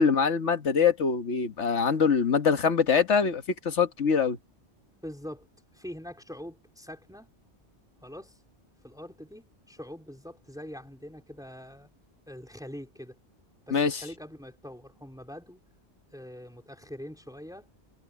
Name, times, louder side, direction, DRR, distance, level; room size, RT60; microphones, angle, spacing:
voice 1, 0.0-4.4 13.7-13.9, left 6 dB, 75° left, 1.7 m, -24 dB
voice 2, 5.0-5.5 5.7-7.3 8.0-8.4 8.8-11.9 12.3-13.2 13.7-15.6 16.1-17.7, equal, 5° right, 4.1 m, -43 dB
omnidirectional pair, 1.2 m